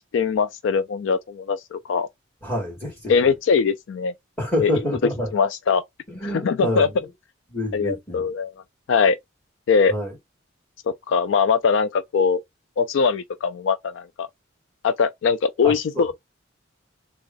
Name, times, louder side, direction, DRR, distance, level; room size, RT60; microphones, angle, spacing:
voice 1, 0.1-2.1 3.1-4.1 4.6-4.8 5.3-5.8 6.2-6.9 7.7-8.5 8.9-9.2 9.7-9.9 11.1-12.4 12.8-14.3 14.8-16.1, left 5 dB, 70° left, 0.3 m, -21 dB
voice 2, 2.4-3.1 4.4-5.3 6.1-6.9 7.5-8.3 9.9-10.1 15.6-16.1, left 1 dB, 10° left, 2.2 m, -27 dB
3.5 x 2.3 x 3.8 m
head